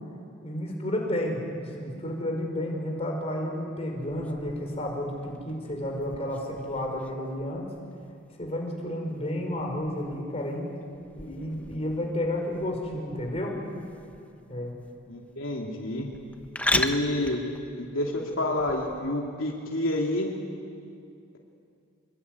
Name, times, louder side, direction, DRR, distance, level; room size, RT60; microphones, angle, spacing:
voice 1, 0.4-7.7 8.4-10.7 11.1-13.6 14.5-14.8, left 1 dB, 30° left, 1 dB, 5.2 m, -31 dB
sound 1, 4.0-19.1, left 1 dB, 5° left, 1.0 m, -38 dB
voice 2, 15.1-16.1 16.7-17.4 17.8-20.3, left 1 dB, 75° left, 0 dB, 3.0 m, -28 dB
26.0 x 23.0 x 9.6 m, 2.4 s
head